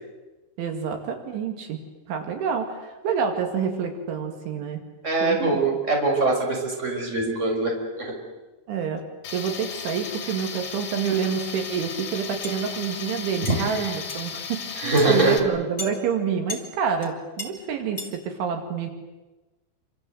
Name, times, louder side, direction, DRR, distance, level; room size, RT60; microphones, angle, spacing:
voice 1, 0.6-1.8 2.1-4.8 5.1-5.8 8.7-9.0 9.3-18.9, right 6 dB, 75° right, 4 dB, 4.8 m, -28 dB
voice 2, 5.0-8.1 13.4-13.6 14.8-15.4, right 3 dB, 15° right, 0 dB, 5.7 m, -23 dB
Tools, 9.2-15.4, left 6 dB, 80° left, 5.0 m, -35 dB
sound 1, 12.4-12.6 13.4-13.6 14.1-14.3 15.0-15.1 15.8-15.9 16.5-16.7 17.0-17.1 17.4-17.5 18.0-18.1, left 2 dB, 15° left, 2.9 m, -34 dB
28.0 x 26.0 x 8.0 m, 1.1 s
omnidirectional pair, 5.5 m